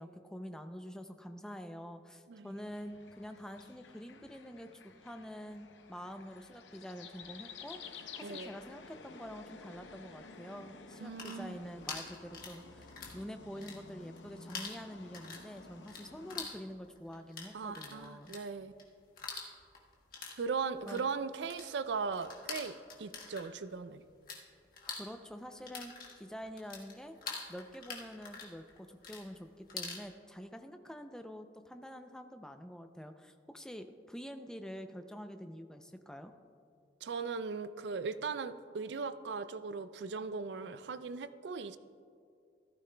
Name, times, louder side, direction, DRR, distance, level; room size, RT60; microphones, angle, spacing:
voice 1, 0.0-18.3 20.9-21.0 24.9-27.2 27.5-36.3, equal, 5° left, 7 dB, 0.4 m, -47 dB
sound 1, 2.6-16.5, left 5 dB, 85° left, 0.7 m, -53 dB
sound 2, 11.0-13.2 13.5-14.2 14.5-24.4 24.7-30.0, left 4 dB, 50° left, 1.4 m, -45 dB
voice 2, 11.0-11.6 17.5-18.7 20.4-24.0 37.0-41.8, right 5 dB, 75° right, 13 dB, 0.4 m, -38 dB
15.0 x 13.5 x 2.2 m, 2.4 s
head